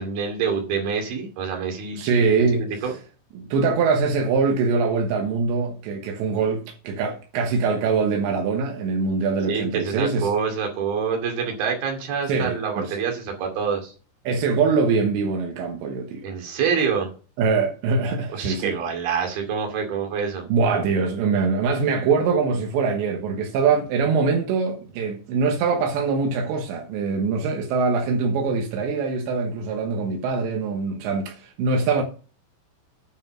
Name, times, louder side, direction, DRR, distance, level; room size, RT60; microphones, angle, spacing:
voice 1, 0.0-2.1 2.5-2.9 9.5-13.9 16.2-17.1 18.3-20.5, right 6 dB, 60° right, 4.1 m, -26 dB
voice 2, 1.9-2.8 3.3-10.3 12.3-13.0 14.2-16.2 17.4-18.8 20.5-32.0, right 4 dB, 85° right, 3.5 m, -23 dB
9.8 x 5.5 x 6.2 m
omnidirectional pair, 5.1 m